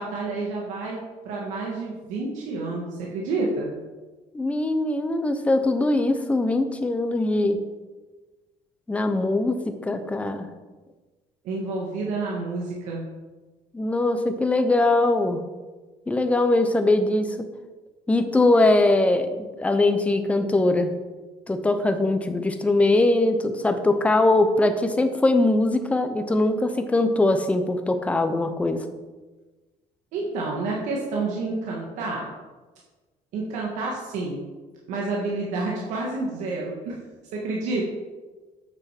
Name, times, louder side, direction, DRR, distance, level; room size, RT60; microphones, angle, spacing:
voice 1, 0.0-3.7 11.4-13.0 30.1-32.3 33.3-34.4 34.9-37.0 37.3-37.9, right 3 dB, 80° right, -3 dB, 1.9 m, -29 dB
voice 2, 4.3-7.6 8.9-10.5 13.7-15.4 16.1-17.5 18.1-20.9 21.5-28.8, left 2 dB, 10° left, 7 dB, 0.8 m, -21 dB
8.4 x 6.4 x 5.9 m, 1.3 s
cardioid pair, 160°, 12 cm